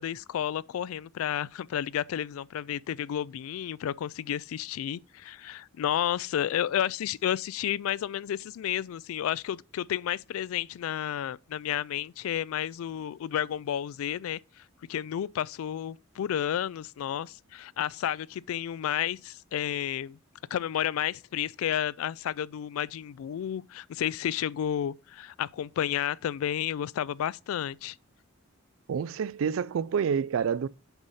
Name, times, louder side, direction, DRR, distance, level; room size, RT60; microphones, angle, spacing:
voice 1, 0.0-14.4 14.9-20.2 20.5-28.0, left 10 dB, 85° left, 0.3 m, -31 dB
voice 2, 28.9-30.7, right 7 dB, 75° right, 0.3 m, -28 dB
8.1 x 4.1 x 5.5 m
head